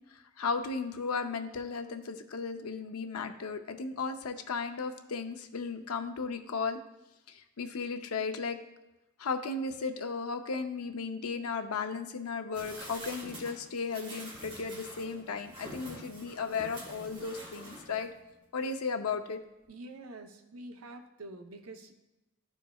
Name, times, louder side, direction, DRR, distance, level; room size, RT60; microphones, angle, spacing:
voice 1, 0.4-6.8 7.3-8.6 9.2-18.1 18.5-19.4, left 4 dB, 85° left, 7 dB, 0.6 m, -35 dB
sound 1, 12.5-18.2 18.6-18.7, right 1 dB, 25° right, 1.6 m, -47 dB
voice 2, 19.7-21.9, right 2 dB, 75° right, 5 dB, 0.7 m, -46 dB
12.0 x 4.5 x 2.3 m, 0.96 s
head